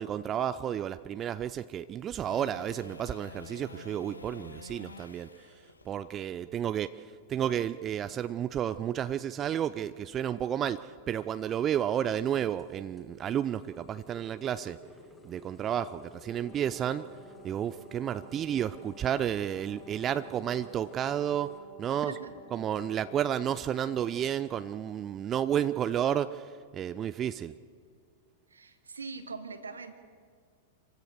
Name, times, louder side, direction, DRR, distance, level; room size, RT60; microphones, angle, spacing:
voice 1, 0.0-5.3 5.9-6.9 7.3-14.8 15.2-17.0 17.4-22.2 22.5-27.5, right 10 dB, 25° right, 13 dB, 0.5 m, -31 dB
sound 1, 2.2-8.4 14.9-15.0, left 4 dB, 80° left, 1.0 m, -49 dB
sound 2, 12.5-21.6, left 1 dB, 10° left, 2.8 m, -53 dB
Brass instrument, 16.3-25.0, left 1 dB, 35° left, 3.0 m, -53 dB
voice 2, 28.5-29.9, right 4 dB, 75° right, 8 dB, 1.8 m, -42 dB
26.5 x 16.0 x 6.7 m, 2.1 s
figure-of-eight pair, 95°, 0 cm